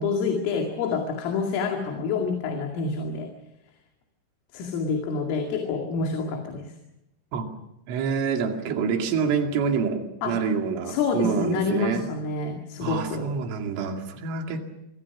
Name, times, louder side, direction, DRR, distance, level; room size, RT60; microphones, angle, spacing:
voice 1, 0.0-3.3 4.5-6.7 10.2-10.4 10.9-13.3, left 4 dB, 85° left, 2 dB, 4.9 m, -27 dB
voice 2, 7.9-12.1 12.8-14.6, right 6 dB, 75° right, 3 dB, 4.9 m, -27 dB
26.5 x 23.5 x 6.1 m, 0.90 s
omnidirectional pair, 5.7 m